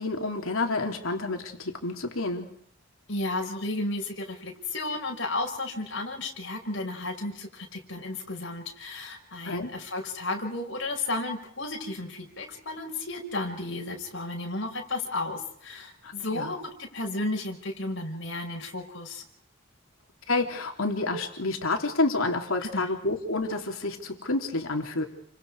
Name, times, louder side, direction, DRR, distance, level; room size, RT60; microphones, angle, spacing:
voice 1, 0.0-2.5 9.5-9.7 16.0-16.5 20.3-25.1, left 2 dB, 85° left, 3 dB, 3.5 m, -29 dB
voice 2, 3.1-19.2 22.6-22.9, left 2 dB, 60° left, 1 dB, 5.7 m, -33 dB
30.0 x 26.0 x 4.9 m, 0.65 s
head